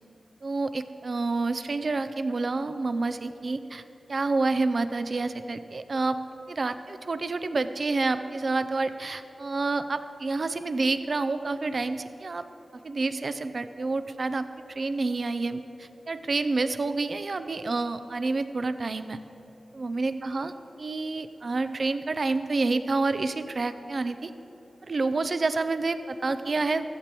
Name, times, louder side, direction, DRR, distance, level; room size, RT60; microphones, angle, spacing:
voice 1, 0.4-3.8 4.1-6.2 6.5-12.4 12.8-14.5 14.8-19.2 19.7-20.5 20.8-24.3 24.8-26.8, right 3 dB, 50° right, 11 dB, 0.5 m, -28 dB
15.0 x 14.5 x 3.0 m, 2.9 s
wide cardioid pair, 140°, 0 cm